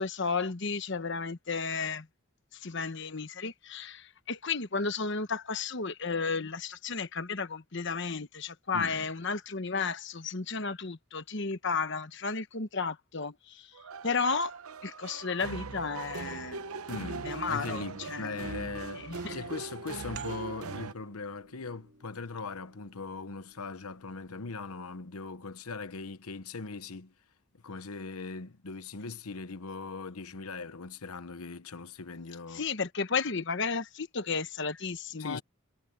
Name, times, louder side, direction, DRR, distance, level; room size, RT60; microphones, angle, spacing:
voice 1, 0.0-2.1 2.5-13.7 14.0-16.6 17.2-18.4 18.9-19.4 32.5-35.4, left 4 dB, 55° left, 1.1 m, -33 dB
voice 2, 8.7-9.0 16.9-27.1 27.6-32.6 35.2-35.4, left 4 dB, 90° left, 1.0 m, -40 dB
sound 1, 13.7-20.9, right 4 dB, 85° right, 0.9 m, -40 dB
sound 2, 20.1-25.4, right 5 dB, 55° right, 3.9 m, -53 dB
head